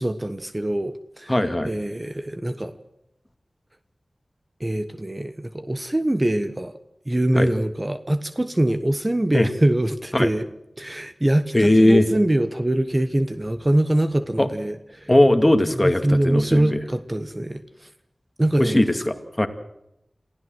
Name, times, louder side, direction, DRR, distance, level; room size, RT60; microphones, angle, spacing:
voice 1, 0.0-1.4 1.6-2.7 4.6-6.7 7.1-10.4 10.8-15.1 15.8-17.9 18.4-18.8, right 1 dB, 25° right, 10 dB, 1.2 m, -23 dB
voice 2, 1.3-1.7 7.4-7.5 9.3-9.5 10.1-10.3 11.5-12.0 14.4-14.5 15.1-16.8 18.6-19.5, left 1 dB, 20° left, 8 dB, 2.3 m, -18 dB
27.0 x 16.0 x 7.9 m, 0.82 s
wide cardioid pair, 55°, 0 cm